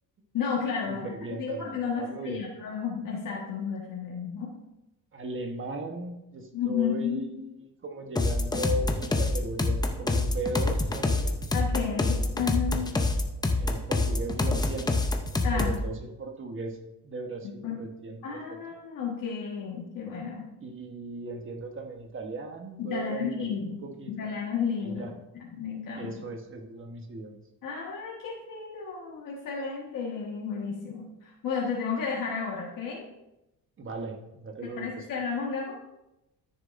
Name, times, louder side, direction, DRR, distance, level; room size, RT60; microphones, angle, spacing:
voice 1, 0.3-1.1 1.4-4.5 6.5-7.2 11.5-12.9 15.4-15.7 17.4-17.8 18.2-20.5 22.8-23.8 24.1-25.1 25.5-26.1 27.6-33.0 34.8-35.8, left 6 dB, 65° left, -4 dB, 1.6 m, -32 dB
voice 2, 0.9-2.4 5.1-11.5 13.5-15.0 15.5-16.8 17.0-18.2 20.6-24.1 24.8-25.1 25.9-27.4 33.8-35.0, right 2 dB, 35° right, 4 dB, 1.2 m, -37 dB
sound 1, 8.2-15.8, left 2 dB, 10° left, 0.6 m, -26 dB
13.5 x 6.7 x 2.6 m, 0.92 s
cardioid pair, 140°, 35 cm